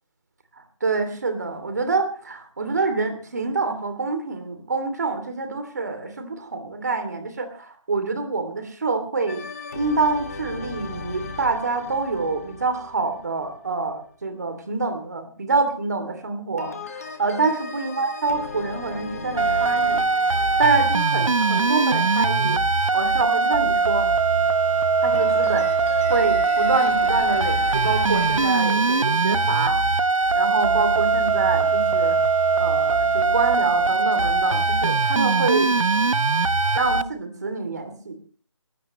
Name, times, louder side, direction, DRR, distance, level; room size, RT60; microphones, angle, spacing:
voice 1, 0.8-9.4 9.7-20.0 20.6-22.6 22.9-24.1 25.0-25.7 26.1-29.8 30.3-32.2 32.6-35.7 36.7-38.1, right 3 dB, 35° right, 8 dB, 2.7 m, -26 dB
sound 1, 9.3-14.0 16.6-22.4 25.1-28.5, left 4 dB, 30° left, 1.9 m, -38 dB
sound 2, 19.4-37.0, right 4 dB, 85° right, 1.1 m, -21 dB
22.5 x 16.0 x 3.1 m, 0.42 s
figure-of-eight pair, 175°, 17 cm